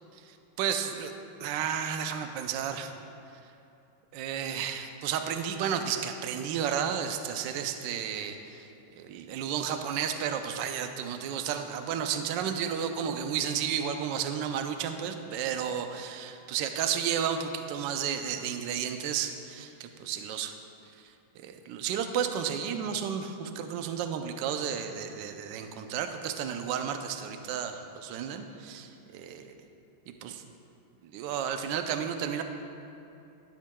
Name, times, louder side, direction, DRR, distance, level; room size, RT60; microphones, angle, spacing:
voice 1, 0.2-1.1 1.4-2.9 4.1-8.7 9.0-20.6 21.4-29.6 30.1-30.4 31.0-32.4, right 8 dB, 75° right, 7 dB, 1.1 m, -32 dB
13.0 x 7.4 x 2.2 m, 2.8 s
omnidirectional pair, 2.3 m